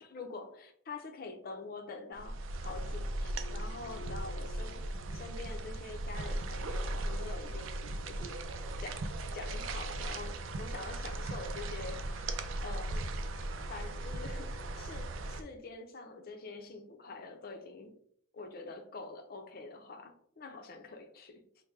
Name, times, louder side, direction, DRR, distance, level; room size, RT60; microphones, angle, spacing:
voice 1, 0.0-8.4 8.8-17.9 18.3-21.4, left 3 dB, 50° left, 0.6 m, -46 dB
sound 1, 2.1-15.4, right 1 dB, 80° right, 0.4 m, -38 dB
4.8 x 2.1 x 3.2 m
head